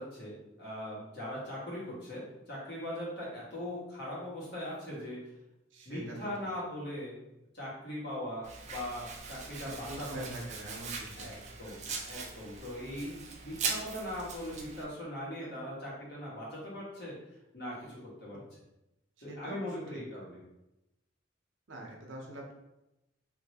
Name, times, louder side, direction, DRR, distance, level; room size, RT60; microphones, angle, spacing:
voice 1, 0.0-5.3 5.8-7.2 7.5-10.3 11.2-11.8 12.0-17.2 17.5-18.4 19.2-20.4, left 1 dB, 60° left, -5 dB, 1.2 m, -40 dB
voice 2, 5.7-6.2 9.6-11.3 19.3-20.0 21.7-22.5, right 1 dB, 70° right, 0 dB, 0.7 m, -44 dB
Domestic sounds home sounds, 8.4-14.8, right 4 dB, 35° right, 0.4 m, -41 dB
3.1 x 2.6 x 2.8 m, 0.91 s
head